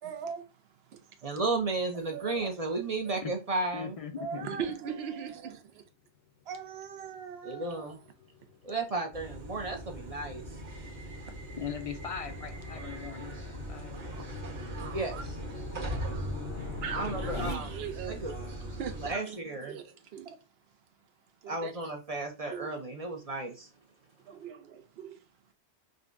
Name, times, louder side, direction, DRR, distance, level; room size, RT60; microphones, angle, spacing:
voice 1, 0.0-0.5 0.9-1.0 2.1-2.5 4.2-5.8 6.5-7.9 14.1-14.2 14.8-15.2 15.9-16.2 16.8-18.2 18.8-20.4 21.4-21.7 22.5-22.7 24.2-25.2, right 7 dB, 70° right, 0.9 m, -40 dB
voice 2, 1.2-4.0 7.4-8.0 8.6-10.4 14.9-15.4 16.9-17.8 18.1-18.3 19.0-19.8 21.5-23.7, right 3 dB, 40° right, 0.7 m, -33 dB
voice 3, 3.7-4.6 11.6-14.0, left 7 dB, 45° left, 0.5 m, -40 dB
sound 1, 6.4-17.5, left 5 dB, 70° left, 0.9 m, -45 dB
sound 2, 9.1-19.1, right 1 dB, 85° right, 1.6 m, -40 dB
5.1 x 2.2 x 2.4 m
omnidirectional pair, 1.1 m